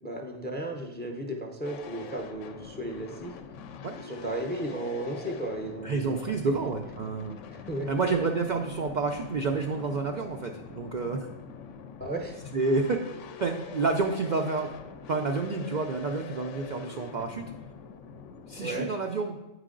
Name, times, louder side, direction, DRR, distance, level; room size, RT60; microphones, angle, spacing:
voice 1, 0.0-3.3 4.0-6.2 7.5-7.9 12.0-12.4 18.6-18.9, right 1 dB, 10° left, 2 dB, 0.4 m, -34 dB
sound 1, 1.6-18.9, left 7 dB, 80° left, 0.9 m, -45 dB
voice 2, 5.8-7.4 7.9-11.3 12.5-13.0 13.4-14.7 15.1-17.5 18.5-19.4, right 4 dB, 60° right, 2 dB, 0.5 m, -29 dB
9.0 x 4.9 x 3.8 m, 0.96 s
omnidirectional pair, 1.3 m